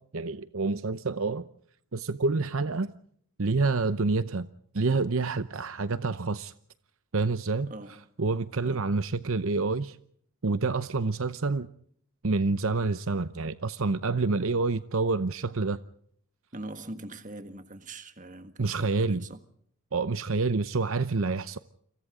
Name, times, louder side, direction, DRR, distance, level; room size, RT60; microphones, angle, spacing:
voice 1, 0.0-1.5 1.9-2.9 3.4-4.5 4.7-6.5 7.1-7.7 8.2-10.0 10.4-11.7 12.2-15.8 18.6-19.3 19.9-21.6, right 3 dB, 65° right, 0.8 m, -28 dB
voice 2, 7.7-8.1 8.6-8.9 16.5-19.4, right 2 dB, 35° right, 1.7 m, -42 dB
29.0 x 26.5 x 3.8 m
head